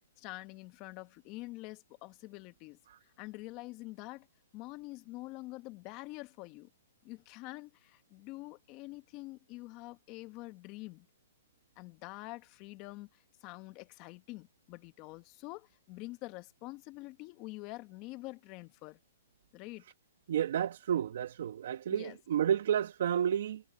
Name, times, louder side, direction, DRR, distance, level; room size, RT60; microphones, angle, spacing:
voice 1, 0.2-2.8 3.2-4.3 4.5-6.7 7.0-11.1 11.8-19.0 19.5-19.8 21.9-22.2, left 21 dB, 30° left, 1.3 m, -46 dB
voice 2, 20.3-23.6, right 9 dB, 60° right, 1.1 m, -31 dB
hypercardioid pair, 155°, 0 cm